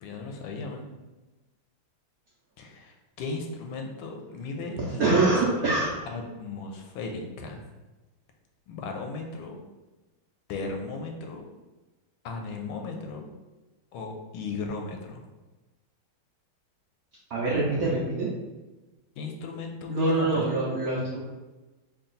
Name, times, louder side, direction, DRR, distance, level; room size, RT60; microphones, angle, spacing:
voice 1, 0.0-0.9 2.6-5.4 6.0-7.6 8.7-9.6 10.5-11.5 12.2-13.3 13.9-15.2 19.2-20.7, left 3 dB, 85° left, 2 dB, 1.4 m, -36 dB
voice 2, 4.8-5.9 17.3-18.3 19.9-21.2, right 3 dB, 70° right, -6 dB, 0.9 m, -25 dB
3.9 x 2.3 x 3.9 m, 1.2 s
omnidirectional pair, 2.2 m